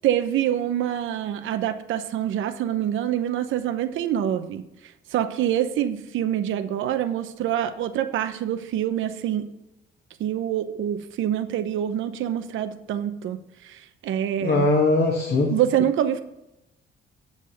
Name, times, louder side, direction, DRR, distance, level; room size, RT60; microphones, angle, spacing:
voice 1, 0.0-4.6 5.1-9.4 10.2-14.7 15.5-16.2, right 10 dB, 80° right, 9 dB, 0.8 m, -26 dB
voice 2, 14.4-15.5, left 2 dB, 50° left, -1 dB, 2.0 m, -20 dB
8.9 x 5.5 x 6.6 m, 0.89 s
cardioid pair, 90°, 20 cm